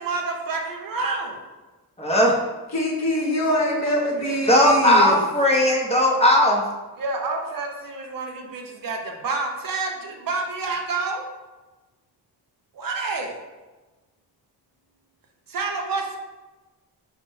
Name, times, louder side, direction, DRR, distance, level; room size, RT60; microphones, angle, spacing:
voice 1, 0.0-1.4 3.3-3.4 3.8-4.0 4.4-4.5 4.8-5.1 7.0-11.3 12.7-13.4 15.5-16.2, right 3 dB, 55° right, 2 dB, 0.6 m, -29 dB
voice 2, 2.0-2.4 4.5-6.6, left 1 dB, 15° left, -2 dB, 0.5 m, -17 dB
voice 3, 2.7-5.1, left 1 dB, 40° left, -1 dB, 0.8 m, -24 dB
4.3 x 2.1 x 3.0 m, 1.2 s
cardioid pair, 75°, 40 cm